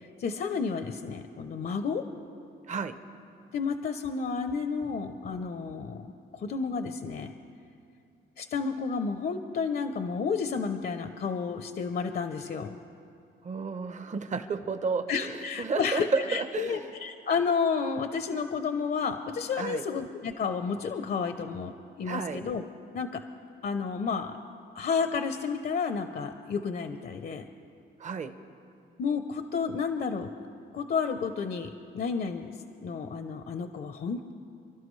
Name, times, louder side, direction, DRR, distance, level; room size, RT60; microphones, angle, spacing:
voice 1, 0.2-2.0 3.5-7.3 8.4-12.8 15.1-21.7 22.0-22.7 22.9-23.2 23.6-24.4 24.7-27.4 29.0-30.3 30.7-34.3, left 5 dB, 50° left, 8 dB, 0.7 m, -31 dB
voice 2, 13.4-16.9 19.6-19.8 22.0-22.4 28.0-28.3, right 4 dB, 40° right, 10 dB, 0.8 m, -32 dB
29.0 x 12.0 x 3.2 m, 2.5 s
cardioid pair, 90°, 20 cm